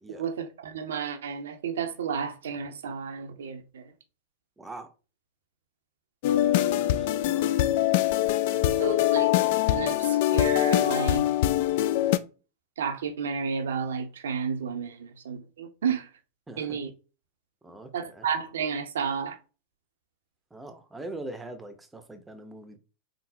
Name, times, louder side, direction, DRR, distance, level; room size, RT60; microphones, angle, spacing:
voice 1, 0.1-3.9 8.8-9.3 9.7-11.3 12.8-16.1 16.6-16.9 17.9-19.4, right 6 dB, 60° right, 0.6 m, -32 dB
voice 2, 4.6-4.9 6.7-7.6 8.2-9.0 16.5-16.8 17.6-18.3 20.5-22.8, right 2 dB, 10° right, 0.7 m, -43 dB
sound 1, 6.2-12.2, left 13 dB, 50° left, 0.3 m, -23 dB
3.9 x 3.8 x 2.7 m
figure-of-eight pair, 90°, 0 cm